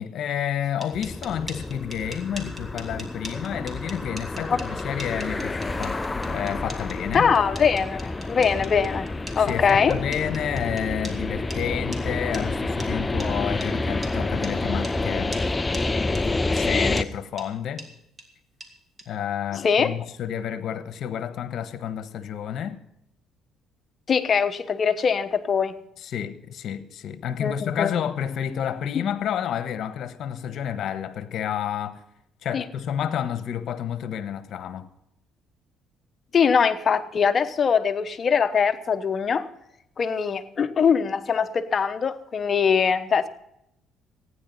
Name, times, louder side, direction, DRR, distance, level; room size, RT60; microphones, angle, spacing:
voice 1, 0.0-6.0 6.3-7.3 9.4-15.4 16.5-17.9 19.1-22.8 26.0-32.0 32.4-34.9, left 9 dB, 65° left, 1.2 m, -30 dB
sound 1, 0.6-11.2 11.5-11.6 11.9-12.0 12.3-12.4 12.8-12.9 13.2-13.3 13.6-13.7 14.0-14.1 14.4-14.5 14.8-15.0 15.3-15.4 15.7-15.8 16.1-16.2 16.6-16.7 17.0-17.1 17.4-17.5 17.8-17.9 18.2-18.3 18.6-18.7 19.0-19.1, right 1 dB, 20° right, 2.7 m, -40 dB
sound 2, 0.9-17.0, left 2 dB, 20° left, 0.6 m, -29 dB
voice 2, 7.1-9.1 9.4-9.9 19.5-19.9 24.1-25.7 27.4-27.9 28.9-29.1 32.5-32.6 36.3-39.5 40.0-43.3, left 6 dB, 40° left, 1.0 m, -22 dB
15.5 x 9.8 x 5.6 m
cardioid pair, 95°, 0 cm